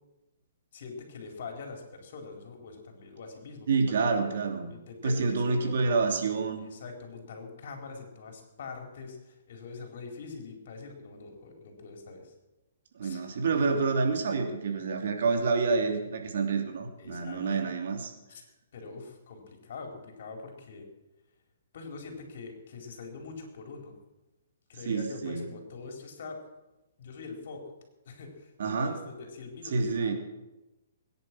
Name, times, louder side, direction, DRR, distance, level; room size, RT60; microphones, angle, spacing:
voice 1, 0.7-4.0 4.7-6.1 6.6-12.3 13.0-13.3 13.5-13.8 17.0-17.7 18.3-18.4 18.7-20.9 21.7-24.0 24.7-26.4 27.0-27.6 28.0-30.1, left 4 dB, 60° left, 2 dB, 4.5 m, -43 dB
voice 2, 3.7-4.7 5.0-6.7 13.0-18.1 24.9-25.4 28.6-29.0 29.7-30.1, right 4 dB, 65° right, 3 dB, 3.0 m, -28 dB
21.5 x 10.5 x 6.2 m, 1.0 s
hypercardioid pair, 155°, 0 cm